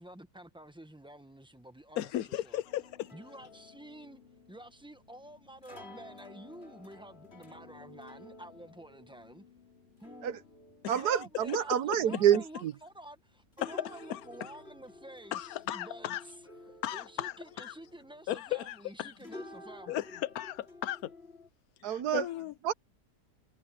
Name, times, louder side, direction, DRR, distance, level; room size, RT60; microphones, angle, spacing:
voice 1, 0.0-2.1 2.4-2.6 3.1-4.2 4.5-9.4 10.0-10.4 10.9-16.2 16.9-20.0, right 1 dB, 5° right, 1.0 m, -50 dB
voice 2, 2.0-3.1 10.8-11.0 13.6-14.5 15.3-16.2 16.8-17.7 18.3-19.1 19.9-21.1 22.1-22.5, left 13 dB, 75° left, 1.2 m, -36 dB
sound 1, 2.6-18.9 19.2-21.5, left 2 dB, 40° left, 3.2 m, -53 dB
voice 3, 10.9-12.7 21.8-22.3 22.6-22.7, right 10 dB, 90° right, 1.5 m, -28 dB
omnidirectional pair, 1.6 m